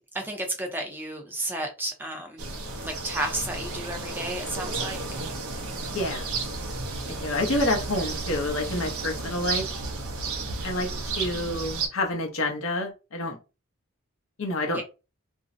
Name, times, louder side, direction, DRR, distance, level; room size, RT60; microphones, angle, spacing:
voice 1, 0.1-2.4 2.8-5.0 14.7-14.8, right 1 dB, 10° right, 0.5 m, -32 dB
sound 1, 2.4-11.9, right 3 dB, 75° right, 0.5 m, -33 dB
voice 2, 5.9-6.3 7.2-9.6 10.6-10.9 11.2-13.4 14.4-14.8, left 1 dB, 65° left, 0.7 m, -28 dB
2.5 x 2.0 x 2.5 m
head